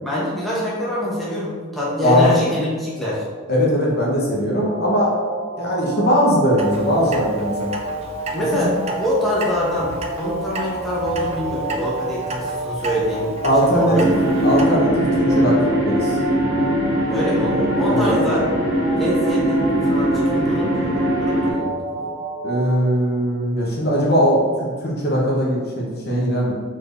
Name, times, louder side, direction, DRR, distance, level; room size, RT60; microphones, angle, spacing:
voice 1, 0.0-3.2 8.3-13.4 13.6-14.1 17.1-18.5 19.0-22.1, equal, ahead, -8 dB, 0.9 m, -24 dB
voice 2, 3.5-5.2 5.6-7.7 8.5-8.6 13.4-14.0 14.4-15.6 15.8-16.2 17.9-18.1 22.4-26.5, equal, 50° left, -4 dB, 1.0 m, -19 dB
sound 1, 4.6-22.8, right 2 dB, 80° right, 1.3 m, -30 dB
Clock, 6.6-14.7, right 2 dB, 30° right, 0.4 m, -34 dB
sound 2, 13.9-21.5, equal, 55° right, 1.3 m, -20 dB
4.7 x 4.4 x 2.6 m, 1.5 s
head